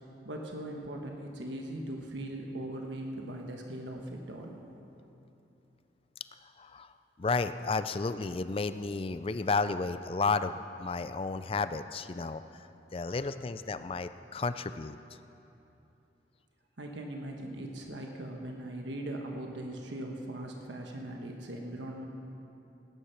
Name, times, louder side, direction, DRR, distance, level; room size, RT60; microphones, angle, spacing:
voice 1, 0.2-4.6 13.1-13.3 16.8-22.1, right 1 dB, 85° right, 2 dB, 1.3 m, -40 dB
voice 2, 6.6-6.9 7.2-12.4 12.9-15.0, left 4 dB, 30° left, 12 dB, 0.4 m, -32 dB
18.0 x 10.0 x 5.9 m, 2.9 s
head